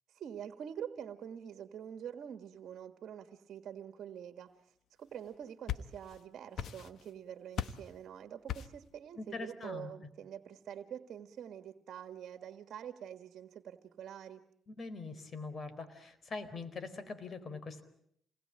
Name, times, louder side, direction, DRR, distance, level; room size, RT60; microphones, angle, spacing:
voice 1, 0.1-14.4, right 9 dB, 65° right, 9 dB, 1.6 m, -46 dB
sound 1, 5.3-6.2 6.6-7.2 7.6-7.9 8.5-8.9, left 9 dB, 70° left, 1.3 m, -39 dB
voice 2, 9.2-9.9 14.7-17.8, left 3 dB, 45° left, 10 dB, 4.2 m, -43 dB
28.5 x 20.5 x 8.8 m, 0.72 s
cardioid pair, 90°, 0 cm